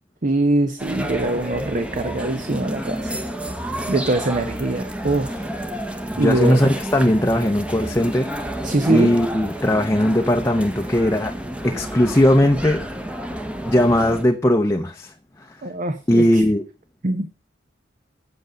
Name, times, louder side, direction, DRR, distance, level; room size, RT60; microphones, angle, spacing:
voice 1, 0.2-3.2 3.9-5.5 6.2-6.6 8.6-9.1 15.6-16.5 17.0-17.3, right 2 dB, 45° right, 0.8 m, -23 dB
sound 1, 0.8-14.2, equal, 5° right, 1.0 m, -30 dB
voice 2, 6.1-8.3 8.9-11.4 11.6-12.8 13.6-15.1 16.1-16.6, left 1 dB, 15° left, 0.7 m, -18 dB
8.1 x 7.8 x 5.1 m
head